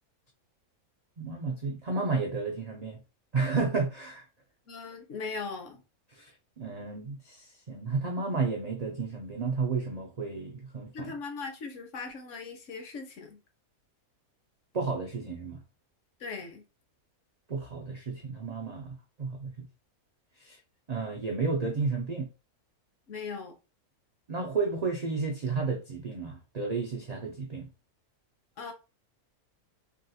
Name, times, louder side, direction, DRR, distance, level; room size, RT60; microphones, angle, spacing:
voice 1, 1.2-3.0 3.3-4.2 6.1-6.3 6.6-11.1 14.7-15.6 17.5-19.7 20.4-20.6 20.9-22.3 24.3-27.7, right 4 dB, 70° right, 0.3 m, -32 dB
voice 2, 4.7-5.8 10.9-13.4 16.2-16.6 23.1-23.5 28.6-28.7, left 4 dB, 60° left, 1.0 m, -39 dB
3.5 x 2.3 x 2.7 m
omnidirectional pair, 1.5 m